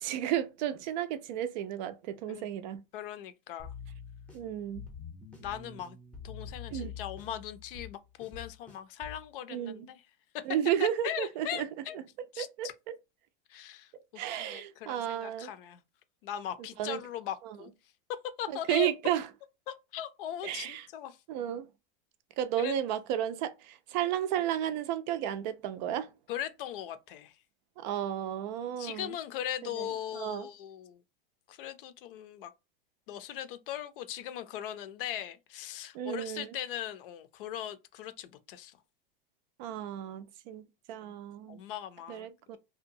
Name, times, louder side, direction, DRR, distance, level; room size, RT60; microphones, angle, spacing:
voice 1, 0.0-2.8 4.3-4.9 6.7-6.9 9.5-9.9 10.5-11.7 12.4-12.7 14.2-15.5 16.8-17.0 17.4-17.6 18.5-19.3 20.4-20.9 21.3-21.7 22.4-26.1 27.8-29.1 29.6-30.5 35.9-36.6 39.6-41.6 42.1-42.6, right 11 dB, 50° right, 0.4 m, -33 dB
voice 2, 2.9-3.7 5.4-6.0 6.2-10.0 10.3-10.5 10.8-12.0 12.3-12.7 13.5-13.9 14.4-15.8 16.2-17.7 18.1-18.9 19.7-21.2 22.6-22.7 26.3-27.3 28.8-31.0 31.5-32.5 33.1-38.8 41.0-41.1 41.5-42.6, left 11 dB, 65° left, 0.5 m, -39 dB
sound 1, 3.6-9.3, left 6 dB, 5° left, 0.6 m, -46 dB
2.8 x 2.2 x 2.6 m
supercardioid pair, 145°, 29 cm